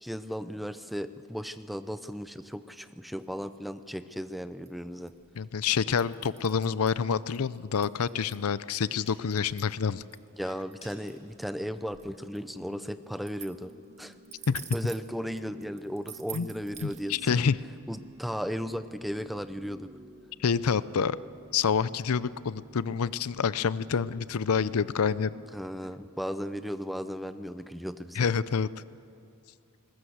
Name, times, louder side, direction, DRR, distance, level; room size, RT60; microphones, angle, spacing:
voice 1, 0.0-5.1 10.4-14.1 14.7-17.4 17.9-19.9 25.5-28.3, equal, ahead, 11 dB, 0.6 m, -36 dB
sound 1, 4.6-17.2, right 9 dB, 30° right, 1.3 m, -49 dB
voice 2, 5.4-10.0 14.5-14.6 16.3-16.5 16.8-17.6 20.4-21.2 21.5-25.3 28.2-28.7, left 6 dB, 70° left, 17 dB, 0.5 m, -27 dB
sound 2, 8.6-9.6 10.2-12.6 13.1-13.5, left 2 dB, 30° left, 5.2 m, -57 dB
Organ / Church bell, 12.2-26.4, right 1 dB, 70° right, 2.5 m, -54 dB
20.5 x 20.0 x 8.0 m, 2.6 s
head